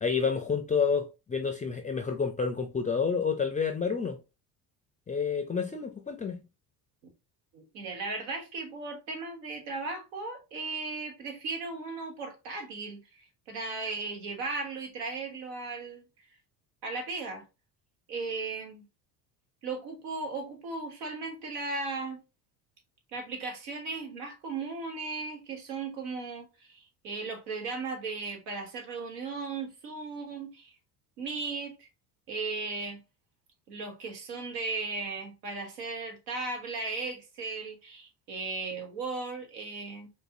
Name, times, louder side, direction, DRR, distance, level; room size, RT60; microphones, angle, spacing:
voice 1, 0.0-4.2 5.1-6.4, left 5 dB, 15° left, 0.4 m, -29 dB
voice 2, 7.5-16.0 16.8-17.4 18.1-18.8 19.6-22.2 23.1-30.7 31.2-31.9 32.3-33.0 33.7-40.1, right 3 dB, 80° right, 1.4 m, -36 dB
5.1 x 2.0 x 2.7 m
hypercardioid pair, 75°, 48 cm